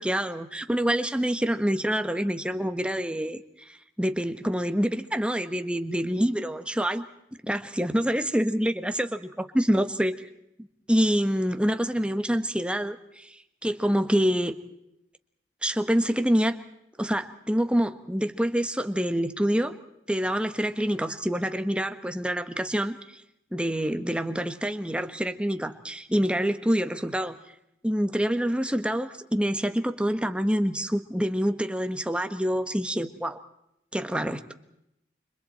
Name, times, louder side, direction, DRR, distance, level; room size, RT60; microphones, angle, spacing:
voice 1, 0.0-7.1 7.4-10.1 10.9-13.4 13.6-14.5 15.6-16.5 17.0-19.7 20.1-23.2 23.5-27.4 27.8-33.4 33.9-34.4, equal, 5° right, 8 dB, 1.4 m, -26 dB
29.5 x 26.5 x 4.4 m, 0.80 s
head